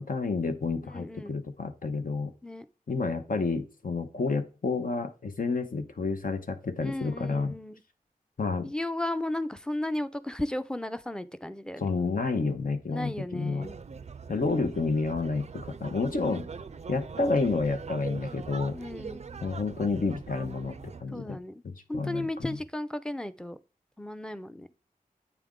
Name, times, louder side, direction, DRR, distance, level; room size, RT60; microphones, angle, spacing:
voice 1, 0.0-2.3 2.9-7.5 8.4-8.7 11.8-13.7 14.3-16.5 16.9-18.8 19.4-20.8 21.0-21.4 21.6-22.3, left 4 dB, 65° left, 0.9 m, -30 dB
voice 2, 0.8-1.3 2.4-2.6 6.8-7.8 8.6-11.9 12.9-13.7 18.7-19.2 21.1-21.6 21.9-23.6 24.0-24.7, left 1 dB, 5° left, 0.5 m, -34 dB
sound 1, 13.6-21.0, right 5 dB, 45° right, 0.4 m, -42 dB
8.4 x 3.4 x 3.7 m
cardioid pair, 40°, 15 cm